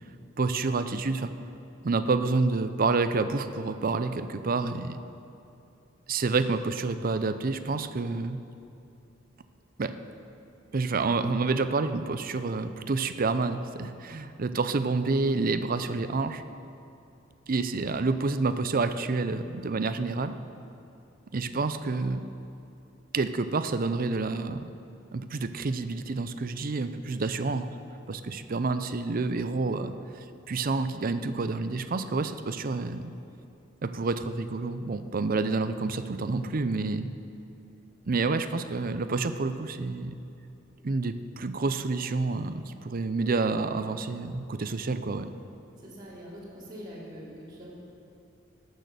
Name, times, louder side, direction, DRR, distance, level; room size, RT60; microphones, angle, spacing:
voice 1, 0.4-1.3 1.8-5.0 6.1-8.4 9.8-9.9 10.7-16.4 17.5-20.3 21.3-22.2 23.1-24.7 25.1-27.7 28.1-33.1 33.8-37.1 38.1-40.2 40.8-45.3, right 3 dB, 50° right, 10 dB, 0.5 m, -28 dB
voice 2, 45.8-47.7, equal, 25° right, -9 dB, 2.7 m, -43 dB
16.5 x 6.4 x 6.8 m, 2.7 s
head